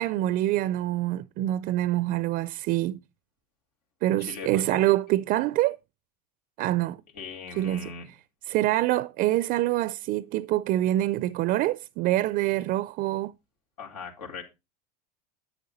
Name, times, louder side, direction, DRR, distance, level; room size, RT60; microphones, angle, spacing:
voice 1, 0.0-3.0 4.0-5.8 6.6-7.0 7.6-7.9 8.5-13.3, right 15 dB, 45° right, 0.4 m, -25 dB
voice 2, 4.2-4.8 7.1-8.1 13.8-14.4, left 5 dB, 90° left, 4.0 m, -39 dB
10.5 x 8.3 x 4.2 m
supercardioid pair, 110°, 20 cm